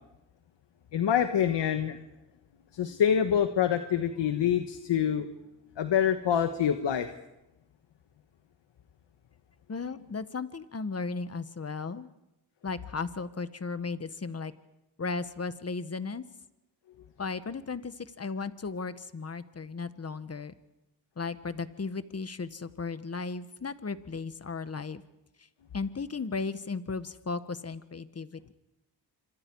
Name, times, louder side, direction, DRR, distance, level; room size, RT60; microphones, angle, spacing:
voice 1, 0.9-2.0 2.7-5.3 5.8-7.1, left 9 dB, 70° left, 8 dB, 1.4 m, -26 dB
voice 2, 9.7-12.1 12.6-14.5 15.0-16.2 17.2-20.5 21.2-25.0 25.7-28.5, left 4 dB, 35° left, 12 dB, 1.5 m, -35 dB
26.5 x 25.5 x 4.8 m, 0.95 s
cardioid pair, 65°, 44 cm